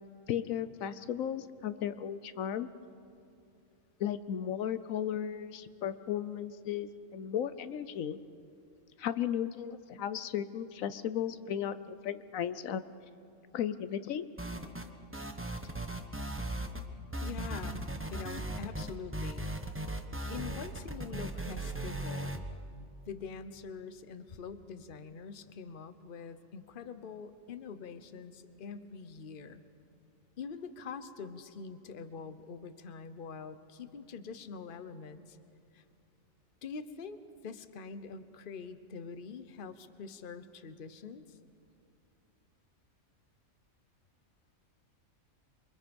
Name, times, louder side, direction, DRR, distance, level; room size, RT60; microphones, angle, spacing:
voice 1, 0.3-2.7 4.0-8.2 9.0-12.8 13.5-14.3, left 9 dB, 80° left, 13 dB, 1.1 m, -35 dB
sound 1, 14.4-14.9 15.1-16.8 17.1-22.4, right 1 dB, 10° right, 0.9 m, -37 dB
voice 2, 17.2-17.8 18.1-19.5 20.3-22.4 23.1-29.6 30.4-35.4 35.7-35.8 36.6-37.2 37.4-41.4, left 5 dB, 45° left, 11 dB, 1.0 m, -44 dB
28.0 x 24.0 x 5.3 m, 2.6 s
omnidirectional pair, 1.4 m